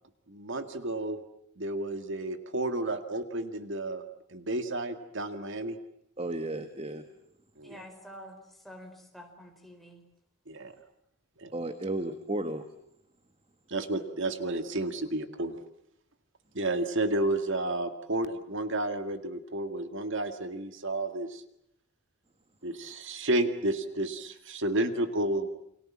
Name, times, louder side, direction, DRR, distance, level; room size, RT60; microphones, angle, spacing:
voice 1, 0.3-1.2 1.6-4.0 4.3-5.8 7.6-7.8 10.5-10.7 11.4-11.5 13.7-15.6 16.5-21.4 22.6-25.5, right 1 dB, 60° right, 8 dB, 2.1 m, -31 dB
voice 2, 6.2-7.0 11.5-12.6, right 1 dB, 25° right, 8 dB, 1.6 m, -33 dB
voice 3, 7.6-8.4 8.6-10.0, equal, ahead, 3 dB, 4.6 m, -48 dB
30.0 x 25.5 x 7.4 m, 0.78 s
head